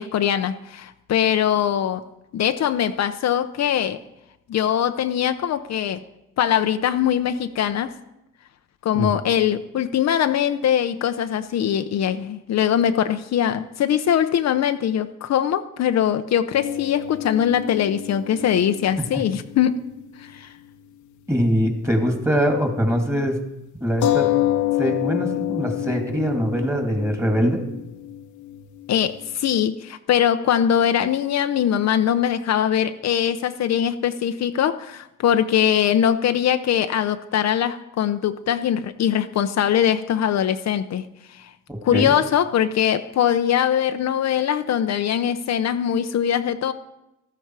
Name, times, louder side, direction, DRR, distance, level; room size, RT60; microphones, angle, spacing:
voice 1, 0.0-2.0 2.3-4.0 4.5-6.0 6.4-7.9 8.8-19.8 20.2-20.5 28.9-41.0 41.3-41.5 41.8-46.7, left 9 dB, 60° left, 8 dB, 0.7 m, -22 dB
sound 1, 16.5-20.4 20.7-20.8 24.0-29.2, left 13 dB, 85° left, 1.1 m, -28 dB
voice 2, 21.3-23.4 23.8-24.3 24.8-27.6 41.7-42.1, equal, 10° right, 4 dB, 2.6 m, -23 dB
14.0 x 13.5 x 4.8 m, 0.91 s
cardioid pair, 90°, 30 cm